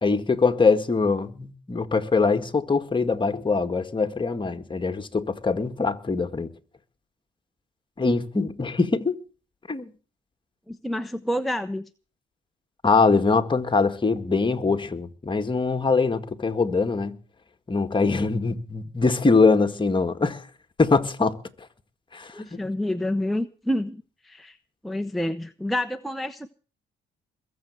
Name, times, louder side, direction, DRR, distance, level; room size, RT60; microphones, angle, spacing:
voice 1, 0.0-6.5 8.0-9.2 9.7-9.9 12.8-17.2 17.7-20.4 20.8-21.4 22.1-22.6, left 4 dB, 25° left, 1.9 m, -23 dB
voice 2, 10.7-11.9 22.3-24.6 24.8-26.5, left 1 dB, ahead, 0.8 m, -28 dB
21.5 x 7.5 x 8.1 m
cardioid pair, 90°, 20 cm